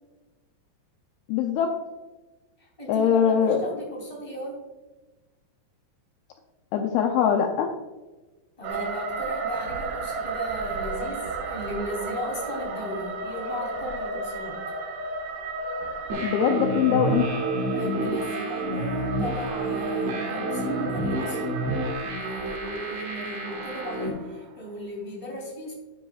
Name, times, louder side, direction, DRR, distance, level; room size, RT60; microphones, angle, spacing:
voice 1, 1.3-1.7 2.9-3.6 6.7-7.7 16.2-17.4, left 8 dB, 85° left, 3 dB, 2.2 m, -22 dB
voice 2, 2.6-4.6 8.6-14.6 17.7-21.4 22.0-25.7, left 1 dB, 10° left, -2 dB, 2.4 m, -36 dB
sound 1, 8.6-24.6, right 3 dB, 85° right, 3.6 m, -34 dB
sound 2, 16.1-24.1, right 1 dB, 65° right, 4.2 m, -29 dB
10.5 x 10.5 x 2.5 m, 1.2 s
omnidirectional pair, 5.3 m